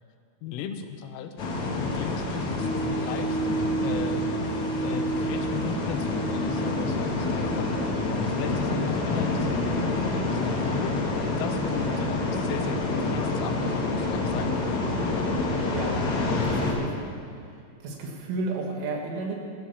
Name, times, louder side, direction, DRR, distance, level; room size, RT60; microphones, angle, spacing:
voice 1, 0.4-1.3 1.7-3.4 3.8-4.3 4.8-11.0 11.4-14.5, left 8 dB, 90° left, 7 dB, 3.6 m, -37 dB
sound 1, 1.4-16.7, left 2 dB, 55° left, 2.3 m, -28 dB
sound 2, 2.6-11.0 11.5-11.6, right 4 dB, 5° left, 3.4 m, -33 dB
voice 2, 15.7-17.0 17.3-19.4, right 3 dB, 75° right, 0 dB, 4.4 m, -33 dB
15.5 x 12.0 x 7.1 m, 2.3 s
omnidirectional pair, 5.7 m